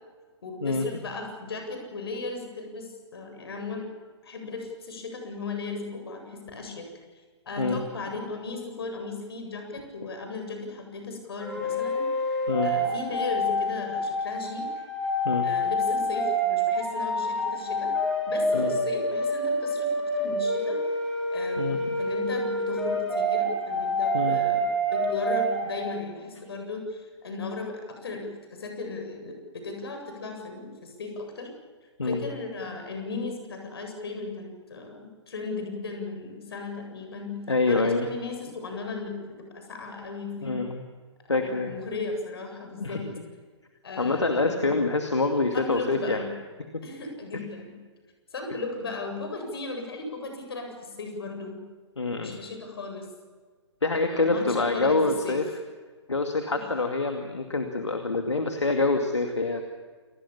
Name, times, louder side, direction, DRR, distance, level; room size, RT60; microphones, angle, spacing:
voice 1, 0.4-3.9 4.2-6.9 7.5-12.3 12.6-14.7 15.4-17.9 18.3-20.8 21.3-31.5 32.0-40.6 41.3-43.1 43.8-44.8 45.5-46.3 46.8-47.8 48.3-51.7 52.2-53.1 54.1-55.4 56.5-56.7, left 3 dB, 55° left, 4 dB, 7.8 m, -36 dB
sound 1, 11.4-25.8, equal, 5° left, 6.3 m, -27 dB
voice 2, 21.6-22.0 24.1-24.4 32.0-32.2 37.5-38.1 40.4-40.8 41.3-41.7 42.8-43.0 44.0-46.2 46.7-46.8 52.0-52.4 53.8-55.4 56.1-59.7, left 3 dB, 75° left, 5 dB, 2.5 m, -26 dB
28.5 x 20.0 x 7.3 m, 1.5 s
figure-of-eight pair, 125°, 15 cm